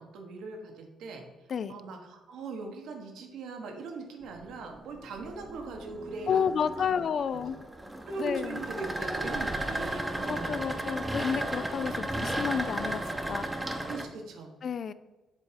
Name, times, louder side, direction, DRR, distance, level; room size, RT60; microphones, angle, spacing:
voice 1, 0.0-7.0 7.3-7.5 8.0-10.8 12.1-12.2 13.8-14.6, right 3 dB, 80° right, 3 dB, 1.2 m, -41 dB
sound 1, 4.2-14.0, right 1 dB, 15° right, 0.8 m, -35 dB
voice 2, 6.3-7.6 8.2-8.6 10.3-13.0 13.3-13.7 14.6-14.9, left 7 dB, 55° left, 14 dB, 0.4 m, -30 dB
7.5 x 3.5 x 5.0 m, 1.1 s
cardioid pair, 90°, 0 cm